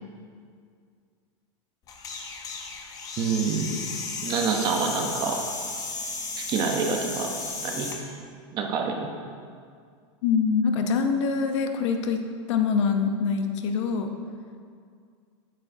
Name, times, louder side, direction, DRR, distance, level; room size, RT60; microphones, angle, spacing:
sound 1, 1.9-8.0, left 4 dB, 25° left, 0.7 m, -34 dB
voice 1, 3.2-3.9 4.2-5.4 6.4-7.3 7.6-7.9 8.5-9.1, right 5 dB, 30° right, 2 dB, 0.8 m, -27 dB
voice 2, 10.2-12.2 12.5-14.1, left 5 dB, 70° left, 6 dB, 0.8 m, -24 dB
9.4 x 8.6 x 2.7 m, 2.2 s
supercardioid pair, 165°, 16 cm